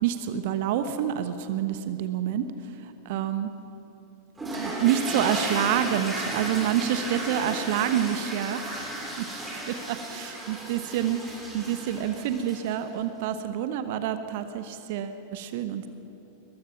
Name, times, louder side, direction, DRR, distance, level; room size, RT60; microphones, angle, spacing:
voice 1, 0.0-2.5 3.0-3.5 4.5-8.9 9.2-9.3 9.7-11.2 11.5-15.9, right 10 dB, 50° right, 10 dB, 1.1 m, -28 dB
sound 1, 4.4-12.8, right 1 dB, 10° right, 5.1 m, -34 dB
22.0 x 20.5 x 6.1 m, 3.0 s
figure-of-eight pair, 90°, 0 cm